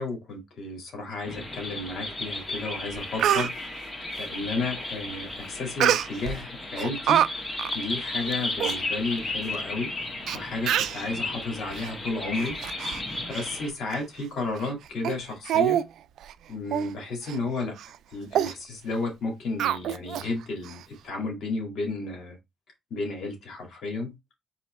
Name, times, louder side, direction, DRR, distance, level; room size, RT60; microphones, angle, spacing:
voice 1, 0.0-3.5 4.2-7.2 7.7-9.9 10.3-12.6 13.3-15.8 16.5-17.8 18.1-22.4 22.9-24.1, left 3 dB, 65° left, 2.1 m, -32 dB
sound 1, 1.2-13.7, left 2 dB, 25° left, 1.4 m, -34 dB
Speech, 2.5-2.6 2.9-3.5 5.8-6.4 6.8-7.3 7.6-7.8 8.3-8.4 8.6-8.8 9.5-9.6 10.3-10.4 10.7-11.0 11.7-11.9 12.3-13.0 13.3-13.5 13.9-14.0 14.6-14.7 15.0-15.2 15.5-15.9 16.2-16.3 16.7-16.9 17.3-17.4 17.8-18.0 18.3-18.5 19.6-20.3 20.6-20.7, right 11 dB, 80° right, 0.3 m, -25 dB
4.2 x 3.0 x 4.2 m
cardioid pair, 90°, 0 cm